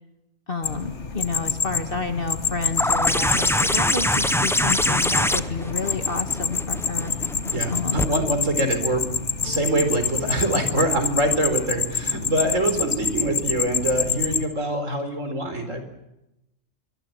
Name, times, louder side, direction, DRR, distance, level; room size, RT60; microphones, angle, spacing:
voice 1, 0.5-7.1 7.7-8.0, left 3 dB, 45° left, 7 dB, 1.9 m, -30 dB
sound 1, 0.6-14.4, left 5 dB, 65° left, 1.9 m, -27 dB
sound 2, 2.8-8.1 9.4-9.5, equal, 5° left, 0.6 m, -24 dB
voice 2, 7.5-9.1 9.4-15.8, right 1 dB, 80° right, 8 dB, 4.6 m, -24 dB
25.0 x 23.5 x 7.7 m, 0.91 s
omnidirectional pair, 1.3 m